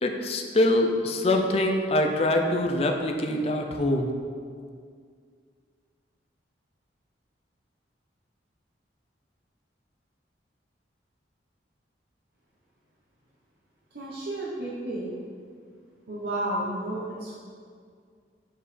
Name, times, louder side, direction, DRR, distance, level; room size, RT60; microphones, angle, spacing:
voice 1, 0.0-4.1, left 1 dB, 35° left, 4 dB, 0.5 m, -24 dB
voice 2, 13.9-15.1 16.1-17.3, right 1 dB, 60° right, -6 dB, 0.9 m, -32 dB
7.6 x 4.8 x 3.3 m, 2.1 s
head